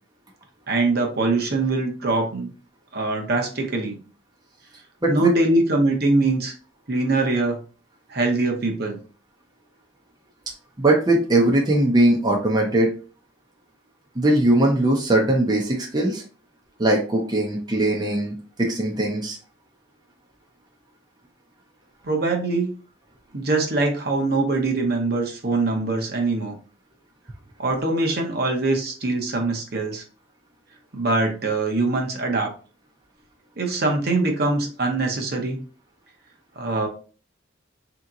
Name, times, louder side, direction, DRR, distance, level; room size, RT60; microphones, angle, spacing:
voice 1, 0.7-2.5 2.9-4.0 5.1-6.5 6.9-7.6 8.1-9.0 22.0-22.7 23.3-26.6 27.6-30.0 30.9-32.5 33.6-35.6 36.6-36.9, right 2 dB, 55° right, 2 dB, 0.9 m, -23 dB
voice 2, 5.0-5.3 10.8-12.9 14.2-16.2 16.8-19.4, right 1 dB, 20° right, -1 dB, 0.7 m, -20 dB
3.5 x 2.9 x 3.8 m, 0.37 s
head